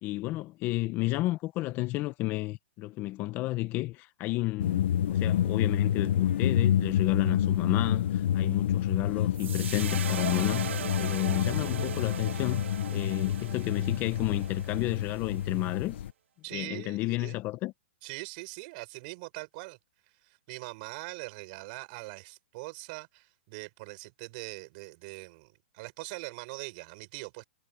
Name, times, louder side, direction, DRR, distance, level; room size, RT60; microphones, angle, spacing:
voice 1, 0.0-12.6 12.9-16.0 16.5-17.7, left 18 dB, 30° left, 1.2 m, -32 dB
sound 1, 4.6-16.1, left 10 dB, 70° left, 1.2 m, -28 dB
sound 2, 9.3-15.7, right 9 dB, 75° right, 1.0 m, -39 dB
voice 2, 16.4-17.4 18.0-19.8 20.0-27.4, right 26 dB, 45° right, 7.6 m, -42 dB
hypercardioid pair, 140°, 6 cm